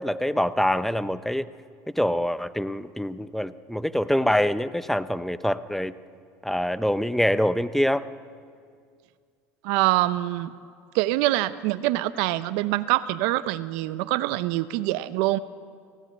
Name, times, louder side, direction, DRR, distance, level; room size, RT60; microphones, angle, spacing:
voice 1, 0.0-1.5 1.9-5.9 6.4-8.1, equal, 5° left, 14 dB, 0.8 m, -25 dB
voice 2, 9.6-10.5 10.9-15.4, right 16 dB, 70° right, 15 dB, 0.8 m, -25 dB
30.0 x 17.0 x 8.3 m, 2.2 s
hypercardioid pair, 85°, 8 cm